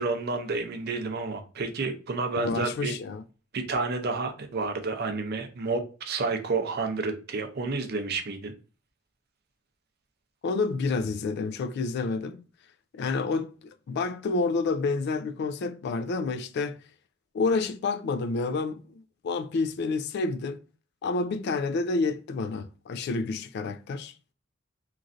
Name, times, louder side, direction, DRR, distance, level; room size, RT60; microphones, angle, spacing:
voice 1, 0.0-2.9 3.5-8.5, right 3 dB, 55° right, 0.5 m, -30 dB
voice 2, 2.4-3.2 10.4-12.4 12.9-13.5 13.9-16.8 17.3-20.6 21.0-24.1, left 3 dB, 60° left, 0.3 m, -29 dB
3.0 x 2.5 x 2.4 m
head